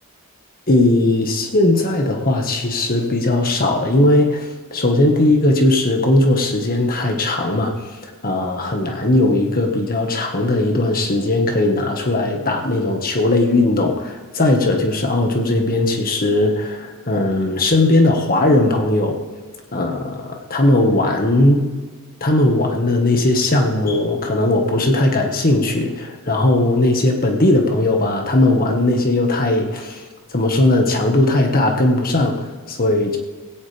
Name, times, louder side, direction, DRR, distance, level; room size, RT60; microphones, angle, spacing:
voice 1, 0.7-7.7 8.2-19.2 19.7-21.6 22.2-30.0 30.3-33.2, left 2 dB, 40° left, 3 dB, 1.7 m, -18 dB
17.0 x 16.5 x 3.5 m, 1.4 s
head